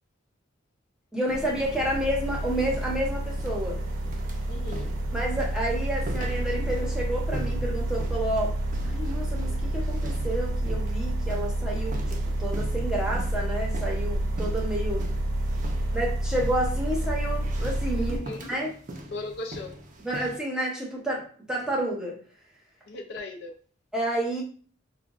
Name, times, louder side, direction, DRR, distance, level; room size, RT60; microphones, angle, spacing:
voice 1, 1.1-3.8 5.1-8.5 8.8-15.1 15.9-18.7 20.0-22.2 23.9-24.4, right 1 dB, 5° right, 0.8 m, -30 dB
sound 1, 1.3-18.2, right 1 dB, 75° right, 0.8 m, -29 dB
sound 2, 2.2-20.4, right 1 dB, 40° right, 0.5 m, -43 dB
voice 2, 4.5-4.9 17.9-18.6 19.1-19.8 22.9-23.6, left 2 dB, 60° left, 0.5 m, -37 dB
4.9 x 2.2 x 2.4 m
head